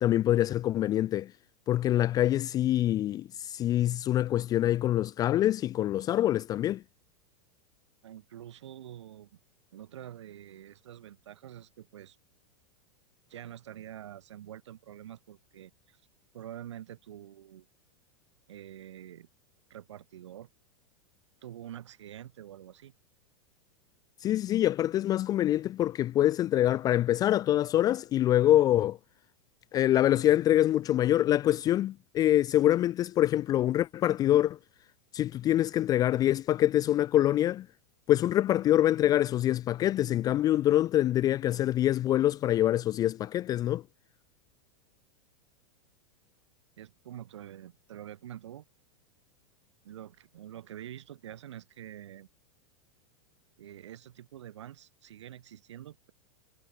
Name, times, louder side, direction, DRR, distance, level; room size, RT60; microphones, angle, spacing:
voice 1, 0.0-1.3 1.7-6.8 24.2-29.0 29.7-34.6 35.1-37.7 38.1-43.8, left 13 dB, 25° left, 0.4 m, -25 dB
voice 2, 8.0-9.4 9.7-12.2 13.3-16.0 16.3-17.7 18.5-19.3 19.7-20.5 21.4-22.9 46.8-48.7 49.8-52.3 53.6-56.1, right 11 dB, 65° right, 6.3 m, -46 dB
figure-of-eight pair, 95°, 16 cm